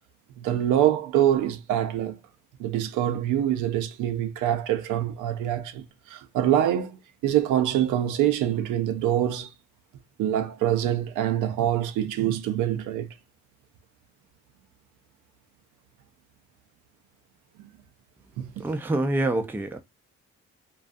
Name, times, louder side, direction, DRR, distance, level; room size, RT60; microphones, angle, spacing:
voice 1, 0.4-2.2 2.6-5.8 6.1-9.5 10.2-13.1 18.4-18.6, right 11 dB, 85° right, 0.5 m, -25 dB
voice 2, 18.6-19.8, right 2 dB, 5° right, 0.4 m, -26 dB
2.4 x 2.3 x 2.5 m
cardioid pair, 90°, 30 cm